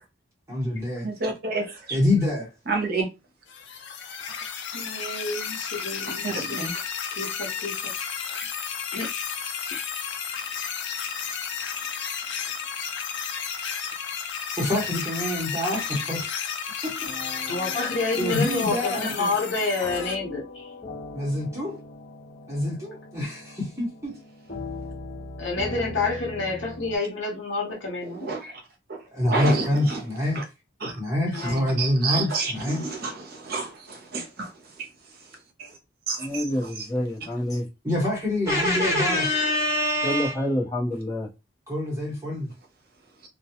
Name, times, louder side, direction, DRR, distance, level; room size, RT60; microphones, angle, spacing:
voice 1, 0.5-1.1 1.9-2.5 14.6-16.3 16.8-16.9 18.2-19.3 21.1-21.8 22.5-24.2 29.1-30.4 30.9-32.8 37.8-40.3 41.7-42.5, left 1 dB, 15° right, 1.0 m, -25 dB
voice 2, 1.0-2.0 2.7-3.1 6.2-6.7 28.2-28.5 28.9-29.0 29.3-30.0 30.3-30.4 30.8-30.9 31.4-31.5 31.8-34.5 34.8-34.9 36.1-36.3, right 3 dB, 55° right, 0.7 m, -29 dB
sound 1, 3.5-20.1, left 7 dB, 65° left, 0.5 m, -32 dB
voice 3, 4.7-6.7 7.2-7.9 8.2-8.4 8.9-9.1 9.7-9.9 17.5-20.7 25.4-28.3 31.3-31.7, left 3 dB, 80° left, 0.8 m, -29 dB
sound 2, 17.0-27.0, left 2 dB, 45° left, 1.1 m, -40 dB
voice 4, 36.2-37.7 38.8-38.9 40.0-41.3, left 1 dB, 20° left, 0.9 m, -28 dB
2.3 x 2.2 x 2.8 m
head